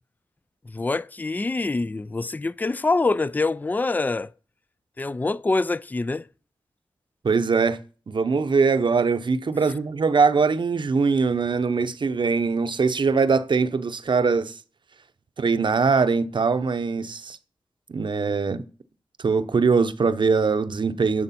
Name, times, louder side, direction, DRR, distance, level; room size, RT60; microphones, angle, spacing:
voice 1, 0.7-4.3 5.0-6.3, left 3 dB, 20° left, 0.3 m, -25 dB
voice 2, 7.2-7.8 8.1-14.5 15.4-17.4 17.9-18.6 19.2-21.2, right 4 dB, 60° right, 0.8 m, -22 dB
11.0 x 6.6 x 4.2 m
cardioid pair, 60°, 9 cm